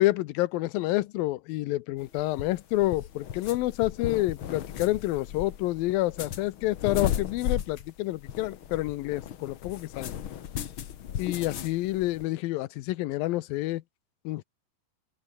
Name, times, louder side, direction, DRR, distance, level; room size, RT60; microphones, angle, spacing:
voice 1, 0.0-10.1 11.2-13.8 14.3-14.4, left 17 dB, 85° left, 2.6 m, -28 dB
sound 1, 2.0-12.2, left 10 dB, 60° left, 1.3 m, -36 dB
open air
omnidirectional pair, 4.1 m